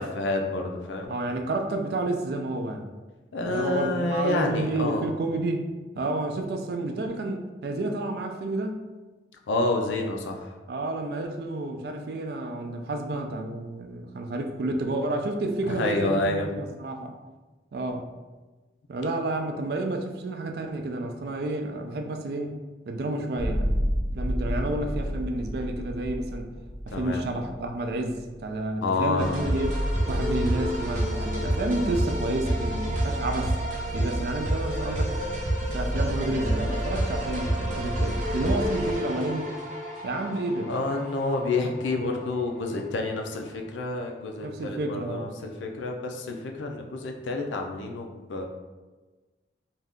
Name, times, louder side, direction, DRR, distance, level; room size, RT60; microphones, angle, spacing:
voice 1, 0.0-1.1 3.3-5.1 9.5-10.5 15.6-16.5 24.7-25.1 26.9-27.2 28.8-29.4 35.7-35.8 40.7-48.5, left 2 dB, 90° left, 3 dB, 0.4 m, -29 dB
voice 2, 1.1-2.9 3.4-5.7 6.0-8.8 10.7-17.1 17.7-18.1 18.9-22.5 22.9-23.8 24.2-26.5 26.9-29.8 30.1-33.5 33.9-35.1 35.6-39.5 40.0-40.7 44.4-45.3, right 2 dB, 60° right, 4 dB, 0.3 m, -30 dB
sound 1, 23.4-28.6, equal, 15° left, 0.4 m, -30 dB
sound 2, 29.2-42.6, right 1 dB, 45° right, 0.7 m, -29 dB
2.6 x 2.3 x 3.5 m, 1.2 s
head